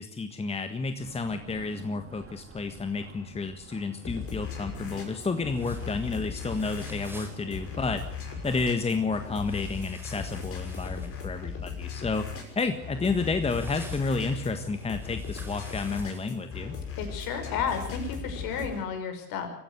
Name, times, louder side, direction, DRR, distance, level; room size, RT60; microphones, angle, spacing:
voice 1, 0.0-8.1 8.4-12.3 12.5-16.8, left 4 dB, 15° left, 8 dB, 1.6 m, -31 dB
sound 1, 1.0-9.7, right 4 dB, 30° right, 4.1 m, -50 dB
sound 2, 4.0-18.8, left 6 dB, 30° left, 6.2 m, -38 dB
sound 3, 5.5-7.4 9.5-11.3 13.4-16.4 18.6-18.7, right 1 dB, 5° right, 4.6 m, -50 dB
voice 2, 17.0-19.5, left 6 dB, 50° left, 6 dB, 5.6 m, -32 dB
23.5 x 15.0 x 8.1 m, 0.67 s
hypercardioid pair, 80°, 44 cm